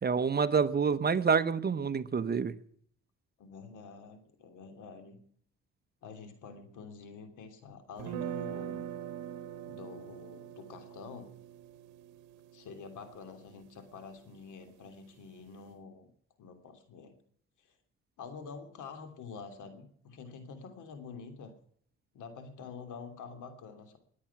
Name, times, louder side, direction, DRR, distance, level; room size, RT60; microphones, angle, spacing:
voice 1, 0.0-2.5, right 5 dB, 35° right, 13 dB, 0.9 m, -27 dB
voice 2, 3.4-5.2 6.0-8.8 9.6-11.3 12.5-16.1 16.4-17.2 17.6-17.7 18.2-21.5 22.1-24.0, left 5 dB, 80° left, 7 dB, 3.0 m, -47 dB
sound 1, 8.0-14.0, right 10 dB, 90° right, 0.9 m, -42 dB
21.5 x 8.6 x 5.9 m, 0.62 s
cardioid pair, 90°, 30 cm